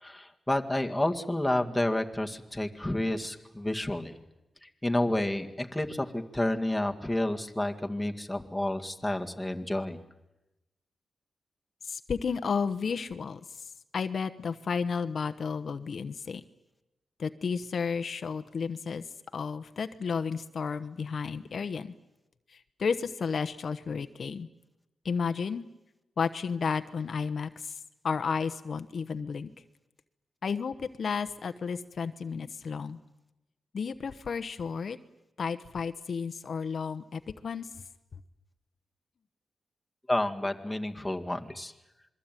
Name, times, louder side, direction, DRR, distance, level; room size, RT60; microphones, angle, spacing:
voice 1, 0.0-4.1 4.8-10.0 40.1-41.7, left 1 dB, 5° left, 3 dB, 2.0 m, -30 dB
voice 2, 11.8-16.4 17.2-19.1 19.3-21.9 22.5-24.5 25.0-25.6 26.2-27.8 28.0-29.5 30.4-33.0 33.7-35.0 35.4-37.7, left 5 dB, 60° left, 10 dB, 1.1 m, -32 dB
27.0 x 22.5 x 9.2 m, 0.96 s
wide cardioid pair, 95°, 0 cm